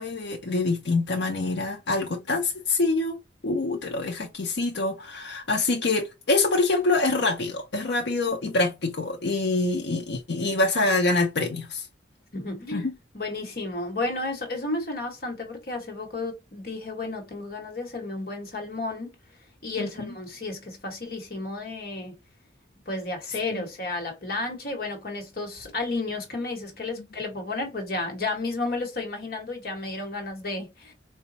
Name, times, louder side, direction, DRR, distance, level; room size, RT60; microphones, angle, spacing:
voice 1, 0.0-11.9 12.7-12.9 19.8-20.1 23.5-23.6, left 3 dB, 70° left, 0.6 m, -25 dB
voice 2, 12.3-19.1 19.6-22.2 22.9-30.9, left 2 dB, 55° left, 1.2 m, -32 dB
4.0 x 2.2 x 2.7 m
head